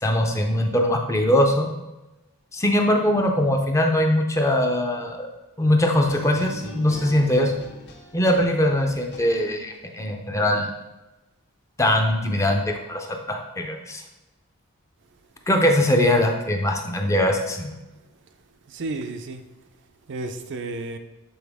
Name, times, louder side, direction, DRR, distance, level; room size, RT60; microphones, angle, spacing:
voice 1, 0.0-1.7 2.5-5.3 5.6-7.5 8.1-10.7 11.8-14.0 15.5-17.7, left 1 dB, 15° left, 0.5 m, -21 dB
sound 1, 6.0-9.8, left 3 dB, 50° left, 0.9 m, -41 dB
voice 2, 18.7-19.5 20.1-21.0, right 2 dB, 55° right, 0.5 m, -32 dB
7.0 x 4.0 x 3.5 m
head